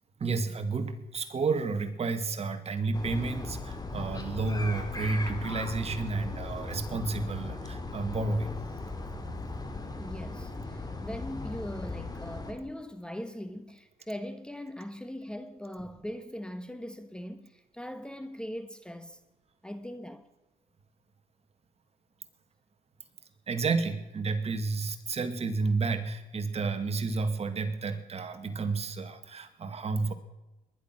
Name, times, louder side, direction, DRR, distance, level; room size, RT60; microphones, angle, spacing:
voice 1, 0.2-8.5 23.5-30.1, right 3 dB, 40° right, 2.1 m, -31 dB
sound 1, 2.9-12.5, left 3 dB, 25° left, 3.2 m, -38 dB
voice 2, 10.0-19.2 19.6-20.3, equal, 5° left, 1.3 m, -40 dB
21.5 x 11.0 x 6.1 m
cardioid pair, 85°, 16 cm